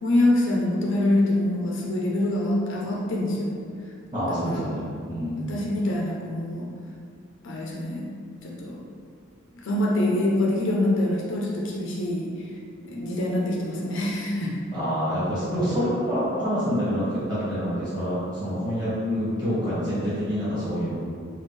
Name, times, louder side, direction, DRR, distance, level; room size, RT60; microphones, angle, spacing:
voice 1, 0.0-3.6 4.3-4.9 5.5-6.7 7.4-8.0 8.4-8.8 9.6-12.3 12.8-14.6, left 1 dB, 60° left, -3 dB, 0.5 m, -25 dB
voice 2, 4.1-5.5 14.7-21.0, equal, 20° right, -11 dB, 1.4 m, -27 dB
3.3 x 2.3 x 3.1 m, 2.3 s
head